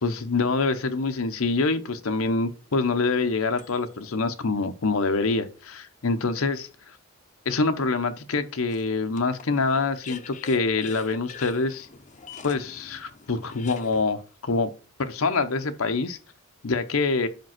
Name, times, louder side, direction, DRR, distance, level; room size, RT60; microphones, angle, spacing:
voice 1, 0.0-6.7 7.5-11.9 12.4-14.7 15.0-16.2 16.6-17.3, left 3 dB, 80° left, 0.8 m, -25 dB
sound 1, 2.5-4.1 4.8-4.9 8.7-14.0, left 5 dB, 35° left, 0.6 m, -45 dB
5.2 x 5.2 x 5.8 m
head